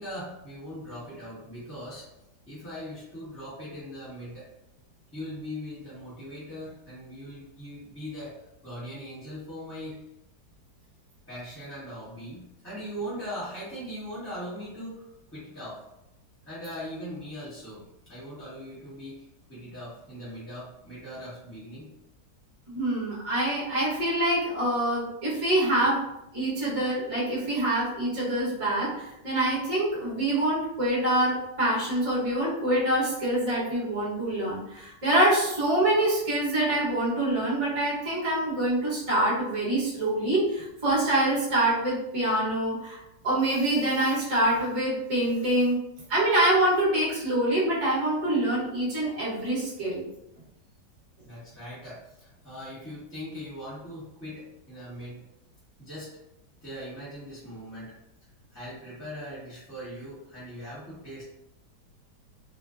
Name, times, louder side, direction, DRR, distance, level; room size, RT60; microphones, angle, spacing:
voice 1, 0.0-2.1 2.5-4.5 5.1-8.4 8.6-10.0 11.3-15.8 16.4-21.9 51.2-55.3 55.8-56.1 56.6-58.0 58.5-61.2, equal, 10° left, -12 dB, 0.7 m, -40 dB
voice 2, 22.7-26.0 26.3-43.0 43.2-45.8 46.1-50.0, right 1 dB, 25° right, -8 dB, 0.9 m, -25 dB
3.1 x 2.1 x 2.4 m, 0.87 s
omnidirectional pair, 1.9 m